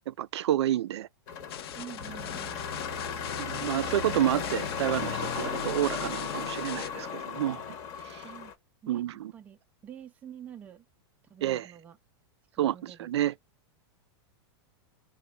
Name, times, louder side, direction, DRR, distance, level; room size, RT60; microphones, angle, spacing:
voice 1, 0.1-1.1 3.4-7.6 8.1-8.2 8.9-9.3 11.4-11.7 12.6-13.3, right 12 dB, 85° right, 0.5 m, -29 dB
sound 1, 1.3-8.5, left 6 dB, 25° left, 0.8 m, -35 dB
sound 2, 1.5-6.9, left 11 dB, 65° left, 0.6 m, -42 dB
voice 2, 1.7-2.6 8.2-8.5 8.8-9.0 9.3-10.9 11.3-12.0 12.6-13.1, right 9 dB, 10° right, 0.4 m, -47 dB
3.9 x 2.2 x 4.2 m
supercardioid pair, 175°, 14 cm